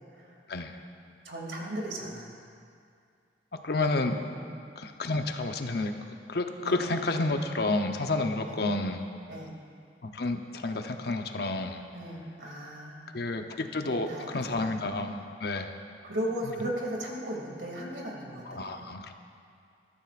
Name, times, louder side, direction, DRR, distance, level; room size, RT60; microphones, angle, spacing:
voice 1, 0.5-0.8 3.6-4.2 4.8-5.9 6.3-9.0 10.0-11.8 13.1-14.1 14.3-15.8 18.5-19.1, left 2 dB, 60° left, 5 dB, 0.8 m, -30 dB
voice 2, 1.2-2.3 4.3-4.6 6.6-6.8 8.4-8.6 9.3-9.5 11.9-13.2 13.9-14.7 16.0-18.7, right 1 dB, 85° right, -1 dB, 2.4 m, -36 dB
21.5 x 12.5 x 2.5 m, 2.4 s
head